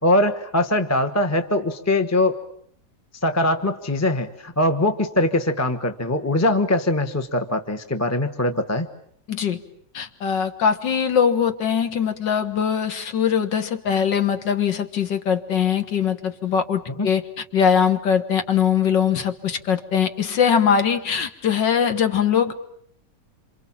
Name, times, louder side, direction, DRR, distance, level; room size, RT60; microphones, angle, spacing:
voice 1, 0.0-2.4 3.2-8.9 17.0-17.1, left 1 dB, 10° left, 7 dB, 0.9 m, -22 dB
voice 2, 9.3-9.6 9.9-17.2 17.5-22.6, left 7 dB, 75° left, 9 dB, 2.1 m, -21 dB
27.5 x 26.5 x 7.4 m, 0.70 s
omnidirectional pair, 1.9 m